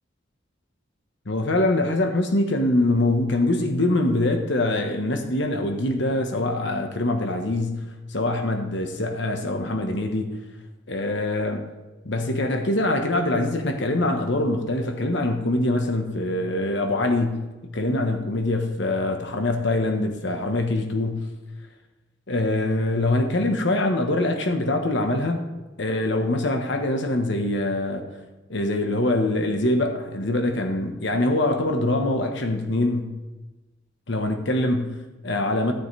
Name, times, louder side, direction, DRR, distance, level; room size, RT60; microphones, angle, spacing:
voice 1, 1.3-10.4 10.9-11.6 12.0-17.5 17.7-21.3 22.3-25.4 25.8-28.1 28.5-33.2 34.1-35.7, left 2 dB, 65° left, 4 dB, 1.2 m, -24 dB
13.0 x 10.0 x 3.3 m, 1.1 s
head